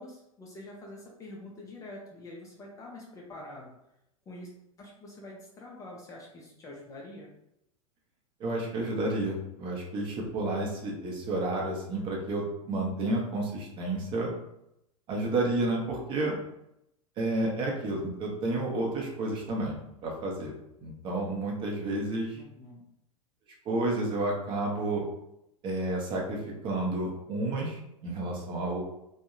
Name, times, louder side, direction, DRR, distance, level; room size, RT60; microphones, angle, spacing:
voice 1, 0.0-3.7 4.3-4.5 4.8-7.3 22.3-22.8, left 1 dB, 20° left, -2 dB, 0.4 m, -46 dB
voice 2, 8.4-14.3 15.1-16.4 17.2-19.8 20.0-22.4 23.6-25.0 25.6-28.8, right 2 dB, 25° right, -1 dB, 0.6 m, -31 dB
2.6 x 2.1 x 2.5 m, 0.82 s
figure-of-eight pair, 95°, 19 cm